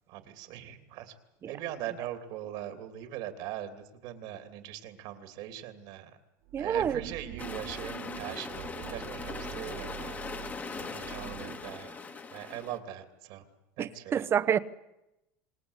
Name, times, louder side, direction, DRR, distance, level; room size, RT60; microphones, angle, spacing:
voice 1, 0.1-1.1 1.5-6.2 6.6-10.2 10.8-12.0 12.3-13.5 13.8-14.3, right 12 dB, 60° right, 2.9 m, -41 dB
voice 2, 6.5-7.0 13.8-14.6, right 8 dB, 30° right, 0.9 m, -28 dB
sound 1, 6.5-11.7, right 13 dB, 80° right, 3.1 m, -45 dB
sound 2, 7.4-12.8, left 4 dB, 20° left, 1.5 m, -40 dB
27.0 x 20.0 x 8.3 m
supercardioid pair, 140°, 9 cm